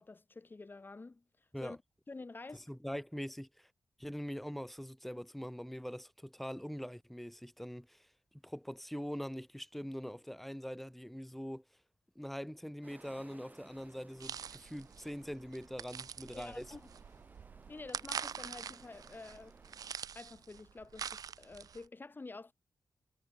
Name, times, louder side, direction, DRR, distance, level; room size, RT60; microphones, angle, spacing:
voice 1, 0.0-1.8 2.1-2.7 16.3-16.9 17.7-19.6 20.2-22.5, left 3 dB, 30° left, 5.7 m, -49 dB
voice 2, 2.5-3.7 4.0-8.1 8.3-11.6 12.1-16.7, equal, 5° left, 1.1 m, -43 dB
sound 1, 12.8-19.9, right 2 dB, 25° right, 5.5 m, -60 dB
sound 2, 14.2-21.9, right 7 dB, 75° right, 0.6 m, -45 dB
wide cardioid pair, 95°, 6 cm